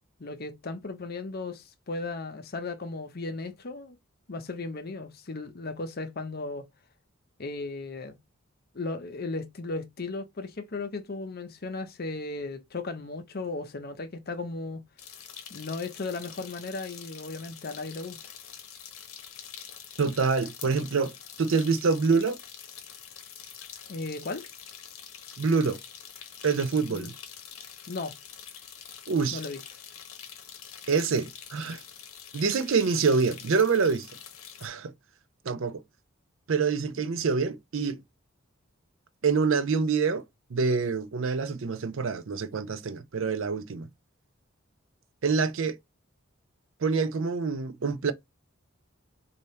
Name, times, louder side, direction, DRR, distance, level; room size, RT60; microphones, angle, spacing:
voice 1, 0.2-4.0 4.3-6.7 7.4-8.2 8.7-14.8 15.5-18.2 23.9-24.4 26.9-27.1 27.9-28.1 29.3-29.6 37.0-37.1, left 3 dB, 45° left, 0.7 m, -36 dB
sound 1, 15.0-34.7, left 8 dB, 85° left, 0.8 m, -46 dB
voice 2, 20.0-21.1 21.4-22.4 25.4-25.8 26.4-27.1 29.1-29.4 30.9-31.8 32.3-34.1 34.6-34.9 35.5-35.8 36.5-38.0 39.2-40.2 40.5-43.9 45.2-45.8 46.8-48.1, right 5 dB, 65° right, 0.5 m, -26 dB
3.4 x 2.8 x 4.2 m
head